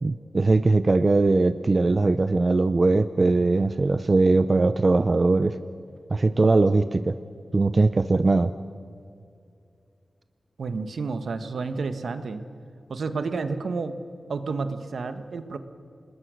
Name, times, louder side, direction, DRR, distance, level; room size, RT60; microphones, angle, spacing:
voice 1, 0.0-5.6 6.1-7.2 7.5-8.5, right 3 dB, 35° right, 12 dB, 0.6 m, -20 dB
voice 2, 10.6-12.4 12.9-14.0 14.3-15.6, right 4 dB, 75° right, 9 dB, 1.4 m, -30 dB
29.0 x 20.0 x 6.4 m, 2.4 s
wide cardioid pair, 110°, 0 cm